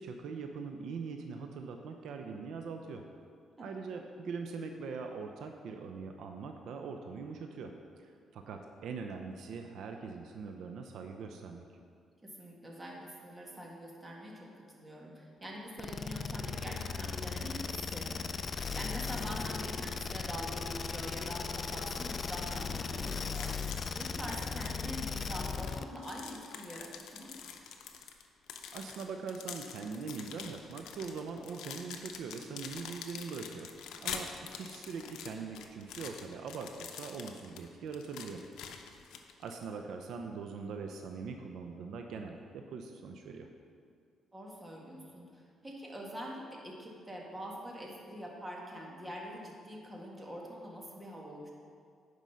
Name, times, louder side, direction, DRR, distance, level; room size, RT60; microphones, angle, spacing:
voice 1, 0.0-3.0 3.6-11.6 28.7-33.7 34.0-38.4 39.4-43.5, right 5 dB, 75° right, 4 dB, 0.6 m, -42 dB
voice 2, 12.2-23.7 24.0-27.3 38.3-38.5 44.3-51.5, equal, 15° right, -1 dB, 1.8 m, -44 dB
sound 1, 15.8-26.0, left 5 dB, 45° left, 0.4 m, -37 dB
sound 2, 23.1-25.1 25.4-39.6, left 7 dB, 85° left, 0.7 m, -46 dB
9.3 x 5.3 x 5.7 m, 2.2 s
cardioid pair, 90°, 0 cm